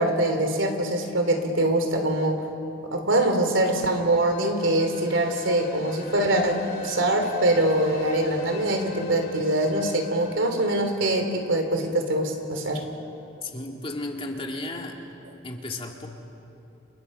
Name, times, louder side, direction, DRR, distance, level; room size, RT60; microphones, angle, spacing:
voice 1, 0.0-2.4 2.9-6.5 6.8-12.8, right 1 dB, 70° right, 5 dB, 3.4 m, -23 dB
sound 1, 3.6-12.4, left 1 dB, 50° left, 3.4 m, -41 dB
voice 2, 13.4-15.0 15.4-16.1, left 2 dB, 30° left, 1 dB, 2.4 m, -34 dB
30.0 x 29.5 x 5.6 m, 2.8 s
head